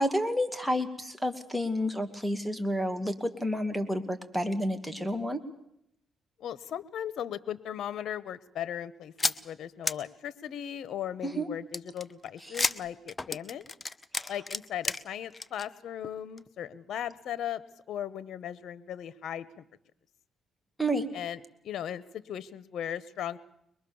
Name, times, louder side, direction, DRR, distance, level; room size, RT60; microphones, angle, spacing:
voice 1, 0.0-5.4 11.2-11.5 14.1-14.3 20.8-21.1, equal, 5° right, 6 dB, 2.3 m, -30 dB
voice 2, 6.4-13.6 14.3-17.6 17.9-19.6 21.1-23.4, left 10 dB, 70° left, 16 dB, 1.1 m, -37 dB
sound 1, 9.2-9.4 9.8-9.9 11.7-15.0 15.3-15.6 16.0-16.1 16.4-16.5, left 3 dB, 20° left, 1.0 m, -31 dB
23.5 x 22.0 x 7.1 m, 0.75 s
cardioid pair, 90°, 0 cm